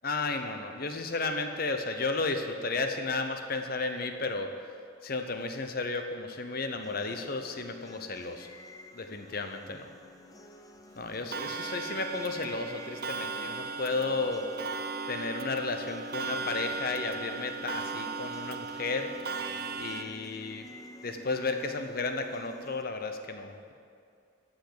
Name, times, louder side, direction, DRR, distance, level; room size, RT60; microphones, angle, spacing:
voice 1, 0.0-4.5 5.0-8.5 8.9-9.9 11.0-14.5 15.1-19.1 19.7-20.7 21.0-23.7, left 3 dB, 50° left, 6 dB, 0.9 m, -33 dB
sound 1, 6.8-22.8, equal, 20° left, 0.6 m, -51 dB
Clock, 11.3-20.0, right 4 dB, 50° right, 0.6 m, -37 dB
14.0 x 5.3 x 8.7 m, 2.3 s
head